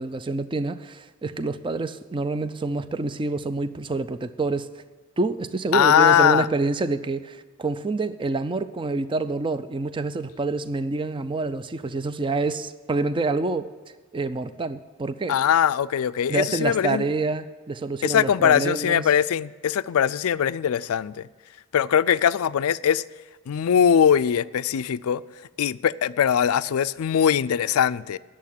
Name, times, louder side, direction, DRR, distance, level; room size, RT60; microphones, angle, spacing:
voice 1, 0.0-4.7 5.2-13.7 14.1-15.4 16.3-19.1, right 3 dB, 25° right, 0.4 m, -27 dB
voice 2, 5.7-6.5 15.3-17.0 18.0-21.3 21.7-23.0 23.5-25.2 25.6-28.2, left 8 dB, 70° left, 0.4 m, -21 dB
10.5 x 7.4 x 8.8 m
head